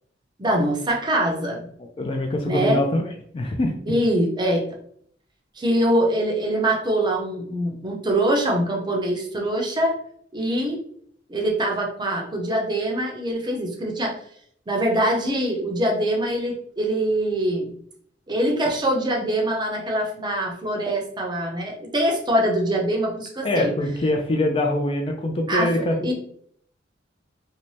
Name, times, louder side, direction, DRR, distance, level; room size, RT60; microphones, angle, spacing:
voice 1, 0.4-1.7 2.4-2.8 3.9-4.6 5.6-9.9 10.3-10.8 11.3-14.2 14.7-17.7 18.3-23.7 25.5-26.1, right 1 dB, 25° right, 0 dB, 0.6 m, -23 dB
voice 2, 1.8-3.0 3.3-3.8 23.4-26.1, left 1 dB, 30° left, 2 dB, 0.3 m, -23 dB
2.6 x 2.1 x 3.1 m, 0.63 s
head